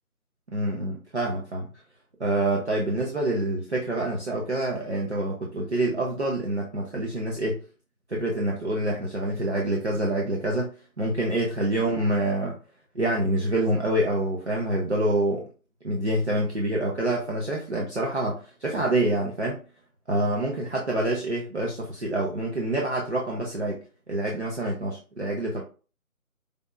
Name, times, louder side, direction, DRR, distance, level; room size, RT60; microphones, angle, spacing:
voice 1, 0.5-1.7 2.2-7.6 8.1-10.7 11.0-12.6 12.9-15.5 15.8-19.6 20.1-23.8 24.1-25.6, right 1 dB, 50° right, -2 dB, 0.8 m, -26 dB
5.0 x 2.4 x 2.4 m, 0.35 s
figure-of-eight pair, 175°, 45 cm